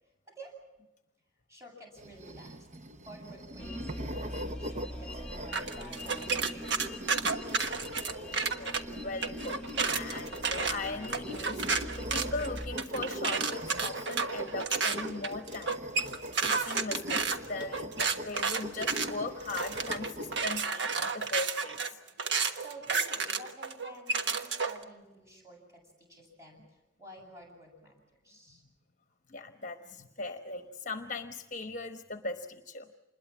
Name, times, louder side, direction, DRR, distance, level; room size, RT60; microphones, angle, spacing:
voice 1, 0.2-0.6 1.5-2.7 3.0-7.6 22.2-28.6, right 1 dB, 15° right, 1 dB, 7.7 m, -52 dB
sound 1, 2.0-20.6, equal, 40° right, 0.9 m, -42 dB
sound 2, 3.6-12.8, left 1 dB, 5° left, 1.2 m, -43 dB
sound 3, 5.5-8.8 9.2-24.8, right 5 dB, 70° right, 1.3 m, -31 dB
voice 2, 8.6-9.6 9.9-22.0 29.3-32.9, left 2 dB, 40° left, 7 dB, 1.1 m, -39 dB
27.0 x 21.0 x 7.4 m, 1.0 s
head